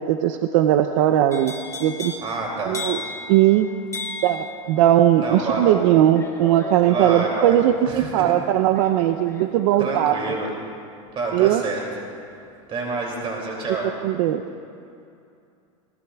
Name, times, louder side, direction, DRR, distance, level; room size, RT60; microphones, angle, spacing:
voice 1, 0.0-1.5 1.8-2.1 2.7-3.0 3.3-3.7 4.2-10.2 11.3-11.6 14.0-14.4, right 12 dB, 65° right, 8 dB, 0.6 m, -19 dB
sound 1, 1.3-13.3 13.6-14.0, left 3 dB, 15° left, 1.8 m, -38 dB
voice 2, 2.2-2.8 5.2-6.1 6.9-7.5 7.9-8.3 9.8-10.5 11.1-11.8 12.7-13.9, right 3 dB, 30° right, -1 dB, 2.7 m, -28 dB
23.5 x 18.0 x 2.4 m, 2.5 s
supercardioid pair, 115°, 17 cm